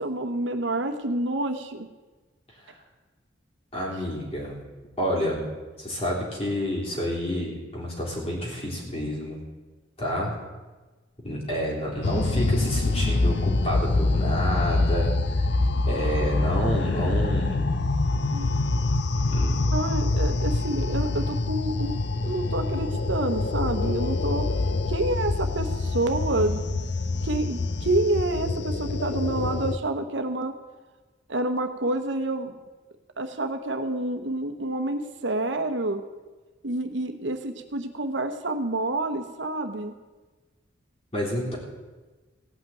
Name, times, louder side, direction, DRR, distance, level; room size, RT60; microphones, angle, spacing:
voice 1, 0.0-1.9 18.3-18.5 19.7-21.9 22.2-24.5 24.9-26.6 27.2-30.5 31.3-32.5 33.2-36.0 36.6-39.9, right 2 dB, 70° right, 7 dB, 1.0 m, -28 dB
voice 2, 3.7-4.6 5.0-5.5 5.8-9.4 10.0-10.3 11.2-15.5 15.9-17.6 19.3-19.6 41.1-41.6, equal, 30° left, -3 dB, 3.5 m, -29 dB
sound 1, 12.0-29.8, left 2 dB, 60° left, 0.6 m, -25 dB
16.5 x 5.8 x 9.0 m, 1.3 s
head